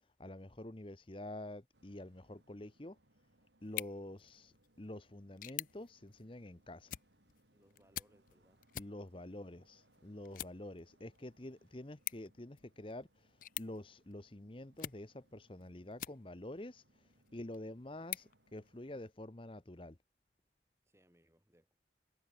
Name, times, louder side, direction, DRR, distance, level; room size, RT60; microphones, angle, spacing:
voice 1, 0.2-3.0 3.6-6.9 8.7-17.0 17.3-20.0, left 1 dB, 30° left, 0.9 m, -48 dB
sound 1, 1.7-19.1, right 1 dB, 75° right, 7.3 m, -73 dB
sound 2, 3.6-16.6 17.1-19.2, left 13 dB, 45° left, 0.4 m, -49 dB
voice 2, 7.5-8.6 9.1-9.3 20.8-21.7, equal, 15° right, 3.3 m, -69 dB
head